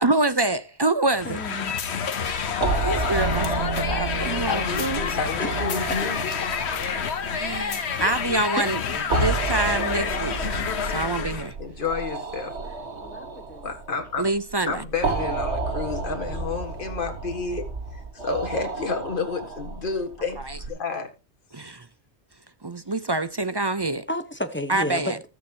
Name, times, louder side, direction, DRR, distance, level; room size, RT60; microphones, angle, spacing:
voice 1, 0.0-1.4 2.2-5.2 7.3-8.8 9.2-10.6 10.9-11.5 14.2-14.8 20.4-20.6 21.5-21.8 22.6-24.1 24.7-25.2, right 2 dB, 30° right, 0.6 m, -26 dB
sound 1, 1.1-11.5, left 7 dB, 75° left, 1.3 m, -29 dB
voice 2, 1.2-1.8 5.4-5.5 7.9-8.1 8.6-9.0 13.0-13.6 24.1-25.2, left 1 dB, 10° left, 1.2 m, -32 dB
sound 2, 2.5-20.7, right 3 dB, 80° right, 1.8 m, -31 dB
Bass guitar, 3.1-9.2, right 2 dB, 50° right, 3.0 m, -38 dB
voice 3, 4.5-6.3 6.9-7.0 11.6-12.8 13.6-14.3 14.7-17.6 17.9-21.1 21.7-21.8, left 4 dB, 50° left, 2.0 m, -30 dB
20.0 x 7.2 x 2.9 m
omnidirectional pair, 1.1 m